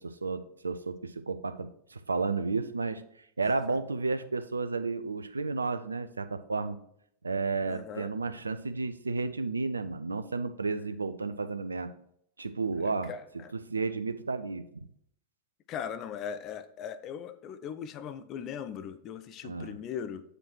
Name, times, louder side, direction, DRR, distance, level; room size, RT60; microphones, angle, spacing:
voice 1, 0.0-3.0 3.4-6.8 7.2-11.9 12.4-13.1 13.5-14.9 19.4-19.7, right 4 dB, 75° right, 11 dB, 0.5 m, -32 dB
voice 2, 7.7-8.1 12.8-13.5 15.7-20.2, left 8 dB, 35° left, 12 dB, 0.5 m, -39 dB
7.5 x 5.0 x 4.5 m, 0.69 s
figure-of-eight pair, 90°, 0 cm